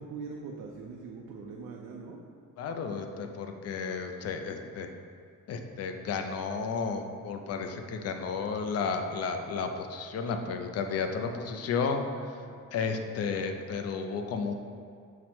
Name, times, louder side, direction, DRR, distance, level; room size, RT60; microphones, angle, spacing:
voice 1, 0.0-2.2 11.1-12.6, right 4 dB, 80° right, -1 dB, 0.5 m, -44 dB
voice 2, 2.6-4.9 5.5-12.0 12.7-14.5, left 5 dB, 50° left, 5 dB, 0.4 m, -32 dB
5.8 x 2.1 x 4.3 m, 2.3 s
cardioid pair, 145°, 32 cm